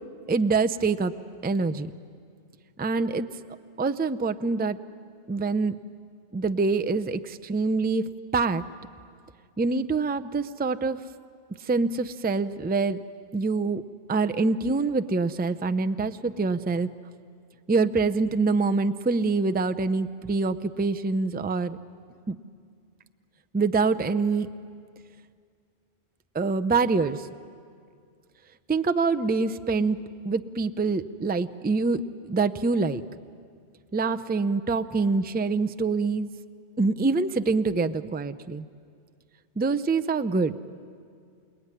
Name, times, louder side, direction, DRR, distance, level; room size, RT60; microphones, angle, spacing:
voice 1, 0.3-1.1 1.4-1.9 2.8-3.3 3.8-4.8 5.3-5.8 6.3-8.6 9.6-11.0 11.6-13.0 13.3-13.8 14.1-16.9 17.7-21.8 22.3-22.4 23.5-24.5 26.3-27.3 28.7-30.0 30.2-33.0 33.9-36.3 36.8-38.7 39.6-40.6, right 4 dB, 15° right, 9 dB, 0.3 m, -25 dB
28.0 x 20.0 x 9.8 m, 2.2 s
omnidirectional pair, 1.2 m